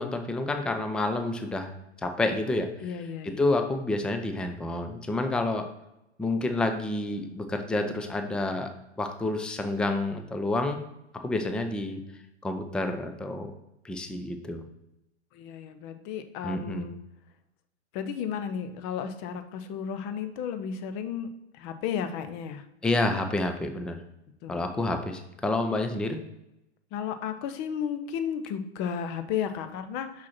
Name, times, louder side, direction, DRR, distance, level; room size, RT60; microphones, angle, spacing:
voice 1, 0.0-1.7 2.0-2.7 3.2-5.6 6.2-8.7 9.0-10.8 11.1-12.0 12.4-13.5 13.8-14.6 16.4-16.9 22.8-24.0 24.5-26.2, left 2 dB, 5° left, 6 dB, 0.4 m, -29 dB
voice 2, 2.8-3.4 11.4-11.5 15.3-16.9 17.9-22.6 24.4-24.6 26.9-30.3, left 8 dB, 35° left, 9 dB, 0.8 m, -33 dB
6.1 x 5.8 x 4.2 m, 0.88 s
figure-of-eight pair, 100°, 34 cm